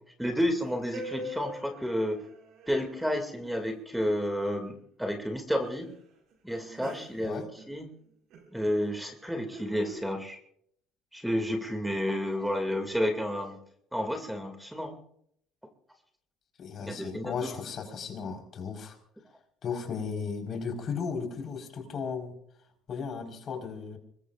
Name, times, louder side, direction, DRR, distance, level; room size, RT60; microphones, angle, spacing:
voice 1, 0.2-2.2 2.7-5.9 6.4-7.9 8.5-10.4 11.1-13.6 13.9-15.0 16.8-17.6, equal, 5° right, 5 dB, 2.5 m, -31 dB
sound 1, 0.6-4.8 5.1-5.2 5.6-5.9 6.3-8.0 8.3-8.5 9.2-10.0, right 1 dB, 65° right, 5.1 m, -45 dB
voice 2, 16.6-19.0 19.6-22.3 22.9-24.0, left 5 dB, 50° left, 3 dB, 4.7 m, -35 dB
25.0 x 21.0 x 2.5 m, 0.69 s
hypercardioid pair, 70°, 0 cm